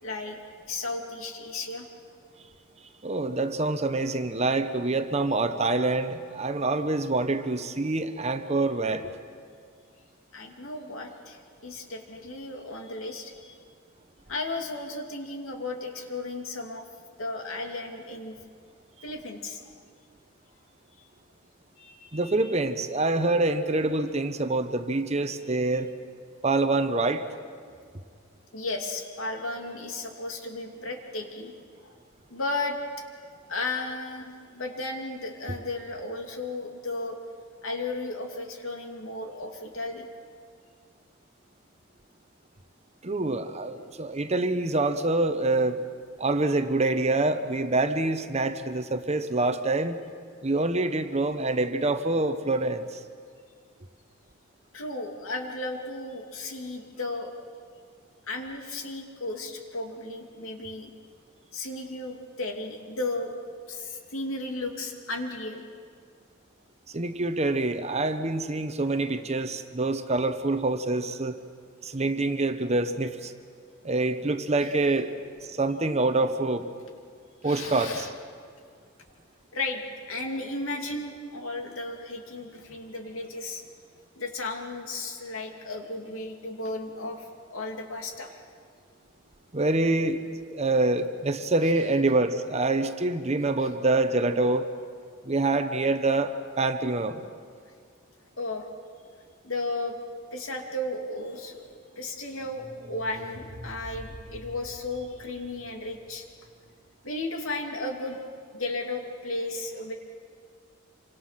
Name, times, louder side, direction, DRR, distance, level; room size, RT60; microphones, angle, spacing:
voice 1, 0.0-0.4 0.7-1.9 10.3-13.6 14.3-16.8 17.2-18.4 19.0-19.7 21.8-22.5 25.5-25.6 28.5-31.5 31.8-31.9 32.3-32.8 33.5-37.2 37.6-40.1 54.7-57.3 58.3-60.9 61.5-63.3 63.7-65.6 77.4-78.1 79.5-79.8 80.1-83.6 84.2-88.4 98.4-98.7 99.4-100.0 100.3-101.6 102.0-106.2 107.0-109.9, left 2 dB, 75° left, 3 dB, 2.6 m, -34 dB
voice 2, 3.0-9.1 22.1-25.9 26.4-27.2 43.0-45.8 46.2-50.0 50.4-53.0 66.9-71.4 71.8-73.3 73.8-75.1 75.4-76.6 77.4-78.1 89.5-90.2 90.5-94.6 95.3-97.2, right 2 dB, 30° right, 9 dB, 1.0 m, -26 dB
sound 1, 102.1-107.2, equal, 85° right, 2.2 m, -47 dB
27.0 x 25.0 x 5.8 m, 2.1 s
head